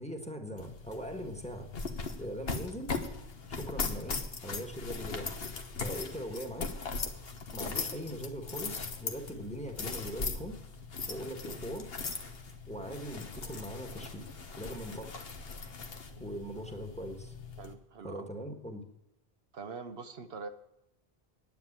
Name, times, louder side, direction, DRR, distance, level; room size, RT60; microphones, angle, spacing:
voice 1, 0.0-1.7 2.2-2.9 3.5-5.3 5.8-6.7 7.5-10.6 11.1-11.9 12.7-14.3 14.6-15.2 16.2-17.3 18.0-18.8, equal, 5° left, 4 dB, 1.4 m, -41 dB
sound 1, 0.6-17.7, left 4 dB, 70° left, 1.4 m, -39 dB
voice 2, 17.6-18.3 19.5-20.5, right 4 dB, 75° right, 8 dB, 1.1 m, -44 dB
9.6 x 9.1 x 8.7 m, 0.88 s
omnidirectional pair, 1.0 m